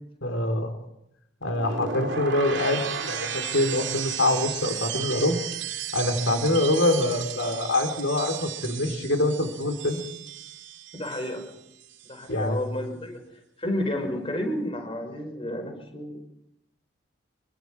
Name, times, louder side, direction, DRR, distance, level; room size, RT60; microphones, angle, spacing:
voice 1, 0.2-0.7 1.4-5.4 5.9-10.0 12.3-12.6, left 1 dB, 85° left, 6 dB, 3.8 m, -25 dB
sound 1, 1.4-11.5 11.8-12.2, right 8 dB, 60° right, 2.7 m, -34 dB
voice 2, 10.9-11.5 12.1-13.2 13.6-16.2, left 1 dB, 30° left, 5 dB, 5.2 m, -31 dB
27.5 x 25.0 x 4.9 m, 0.79 s
head